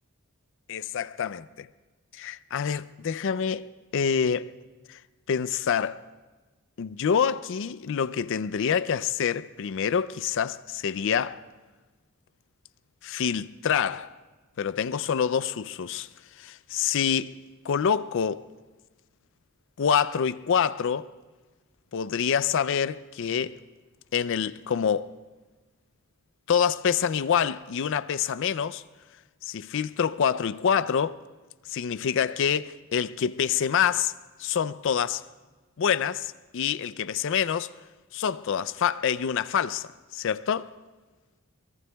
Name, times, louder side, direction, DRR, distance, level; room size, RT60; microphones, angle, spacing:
voice 1, 0.7-1.7 2.1-4.5 4.9-5.0 5.3-6.0 6.8-11.4 13.0-14.1 14.6-16.1 16.4-17.4 17.6-18.5 19.8-21.1 21.9-23.6 24.1-25.1 26.5-28.8 29.4-31.2 31.7-35.3 35.8-37.7 38.1-40.7, left 7 dB, 60° left, 0.4 m, -26 dB
23.5 x 21.0 x 2.3 m
head